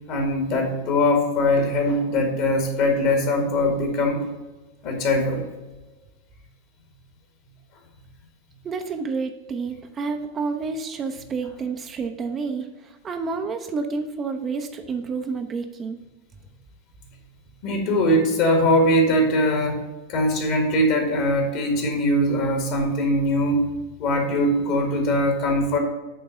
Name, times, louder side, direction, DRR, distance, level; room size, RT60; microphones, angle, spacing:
voice 1, 0.1-4.2 4.8-5.4 17.6-19.8 20.1-23.6 24.0-25.8, left 1 dB, 45° left, 2 dB, 1.8 m, -21 dB
voice 2, 8.6-16.0, right 4 dB, 25° right, 6 dB, 0.7 m, -29 dB
8.8 x 3.9 x 5.6 m, 1.2 s
figure-of-eight pair, 90°, 0 cm